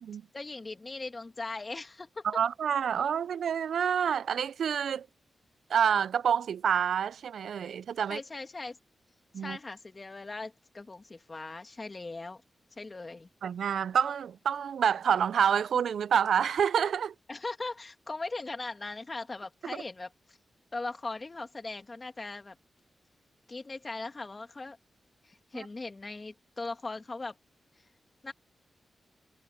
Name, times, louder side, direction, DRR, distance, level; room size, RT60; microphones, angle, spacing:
voice 1, 0.3-2.3 8.1-8.8 9.3-12.4 12.8-13.3 17.3-20.4 20.7-22.6 23.5-24.8 25.2-27.4 28.2-28.3, left 3 dB, 35° left, 2.4 m, -39 dB
voice 2, 2.2-5.1 5.7-8.2 9.3-9.6 13.4-17.1 19.6-19.8, right 8 dB, 85° right, 0.4 m, -28 dB
cardioid pair, 65°, 0 cm